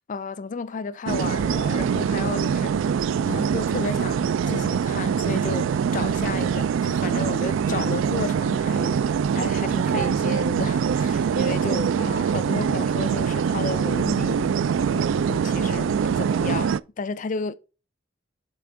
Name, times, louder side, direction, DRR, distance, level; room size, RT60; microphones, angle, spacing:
voice 1, 0.1-9.1 9.3-14.6 14.8-17.5, left 4 dB, 40° left, 0.4 m, -33 dB
sound 1, 1.1-16.8, right 7 dB, 75° right, 0.3 m, -23 dB
7.0 x 4.3 x 3.7 m
head